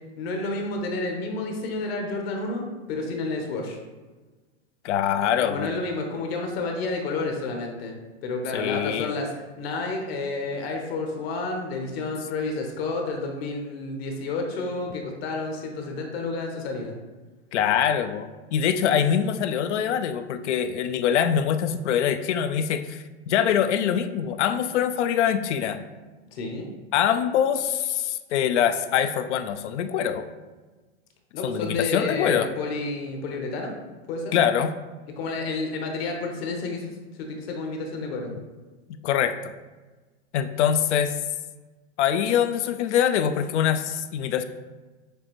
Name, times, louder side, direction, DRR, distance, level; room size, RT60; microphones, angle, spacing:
voice 1, 0.2-3.8 5.4-7.9 8.2-16.9 26.3-26.7 31.3-33.7 34.1-34.3 35.2-38.3, left 3 dB, 65° left, 2 dB, 1.0 m, -30 dB
voice 2, 4.8-5.7 8.5-9.1 17.5-25.8 26.9-30.2 31.4-32.5 34.3-34.7 39.0-39.5 40.3-41.2 42.0-44.4, left 9 dB, 90° left, 10 dB, 0.5 m, -24 dB
6.5 x 2.5 x 3.0 m, 1.2 s
supercardioid pair, 135°, 34 cm